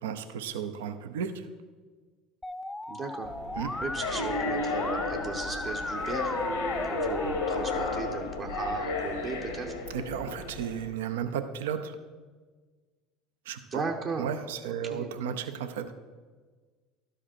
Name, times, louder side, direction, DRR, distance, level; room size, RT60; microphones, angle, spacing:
voice 1, 0.0-1.5 3.6-3.7 9.9-12.0 13.5-13.8 14.2-15.9, right 8 dB, 80° right, 10 dB, 0.5 m, -34 dB
Musical instrument, 2.4-8.0, left 1 dB, 10° left, 0.3 m, -35 dB
voice 2, 2.9-3.3 3.8-6.3 6.8-9.7 13.7-14.3 14.7-15.1, right 4 dB, 45° right, 1 dB, 0.8 m, -36 dB
sound 1, 3.3-10.9, left 3 dB, 85° left, 1.2 m, -33 dB
12.0 x 5.0 x 4.4 m, 1.4 s
hypercardioid pair, 75°, 0 cm